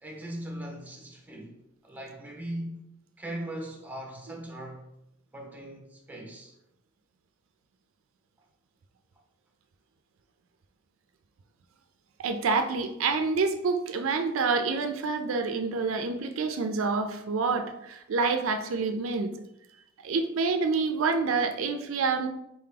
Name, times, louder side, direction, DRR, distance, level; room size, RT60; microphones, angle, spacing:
voice 1, 0.0-2.8 3.2-4.8 5.3-6.5, right 1 dB, 10° right, 0.8 m, -39 dB
voice 2, 12.2-19.3 20.0-22.3, right 4 dB, 85° right, 0.4 m, -27 dB
4.2 x 2.8 x 3.7 m
head